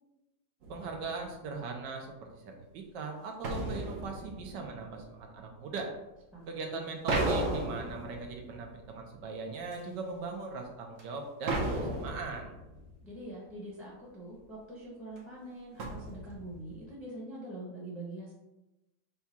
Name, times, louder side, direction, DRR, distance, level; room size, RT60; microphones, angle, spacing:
sound 1, 0.6-1.2 3.4-5.2 7.1-9.0 9.7-9.8 11.0-11.1 11.5-13.0 15.2-15.3 15.8-16.8, right 2 dB, 60° right, 0.9 m, -35 dB
voice 1, 0.7-5.9 6.5-12.5, right 4 dB, 80° right, 2 dB, 1.4 m, -39 dB
voice 2, 13.0-18.3, right 1 dB, ahead, -5 dB, 0.7 m, -44 dB
4.8 x 2.4 x 4.2 m, 0.97 s
omnidirectional pair, 1.9 m